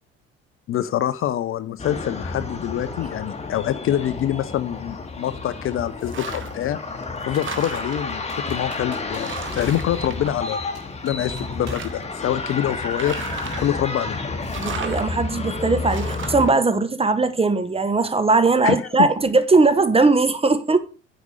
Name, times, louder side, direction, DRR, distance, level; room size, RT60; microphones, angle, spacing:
voice 1, 0.7-6.8 7.3-10.6 11.0-13.2 13.6-14.2 18.6-19.1, left 11 dB, 40° left, 0.7 m, -25 dB
sound 1, 1.8-16.5, left 3 dB, 20° left, 1.7 m, -31 dB
sound 2, 6.0-6.7 7.0-8.1 8.7-8.8 9.1-10.9 11.2-12.2 12.8-13.8 14.4-15.1 15.9-16.5, right 7 dB, 35° right, 1.3 m, -36 dB
Computer keyboard, 7.3-8.0 8.3-9.8 10.1-10.2 10.7-11.9 12.2-13.8, right 3 dB, 75° right, 3.2 m, -45 dB
voice 2, 14.6-20.8, right 3 dB, 15° right, 1.2 m, -19 dB
9.5 x 5.1 x 6.6 m
figure-of-eight pair, 55°, 34 cm